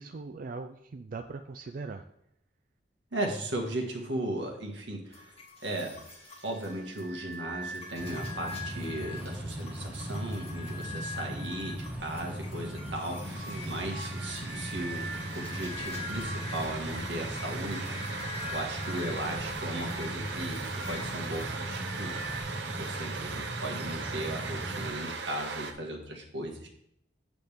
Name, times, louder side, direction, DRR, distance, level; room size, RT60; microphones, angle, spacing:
voice 1, 0.0-2.0 13.4-13.7, right 4 dB, 50° right, 7 dB, 0.4 m, -40 dB
voice 2, 3.1-6.0 6.4-26.7, right 1 dB, 85° right, 1 dB, 1.7 m, -37 dB
sound 1, 5.1-22.4, left 1 dB, 35° left, 2.0 m, -43 dB
sound 2, 7.9-24.9, equal, 10° right, 1.6 m, -39 dB
sound 3, 13.2-25.7, right 5 dB, 70° right, 0.8 m, -39 dB
7.9 x 7.8 x 3.5 m, 0.75 s
head